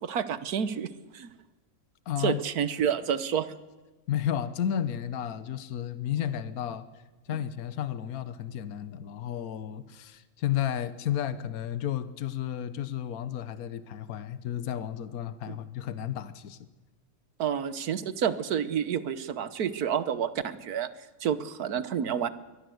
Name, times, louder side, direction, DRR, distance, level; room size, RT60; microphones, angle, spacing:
voice 1, 0.0-1.3 2.2-3.5 7.3-7.4 15.5-15.6 17.4-20.9 21.2-22.3, right 8 dB, 85° right, 14 dB, 1.6 m, -29 dB
voice 2, 2.1-2.4 4.1-6.9 7.3-16.7, left 10 dB, 75° left, 14 dB, 1.4 m, -32 dB
23.0 x 18.5 x 7.8 m, 1.2 s
omnidirectional pair, 1.6 m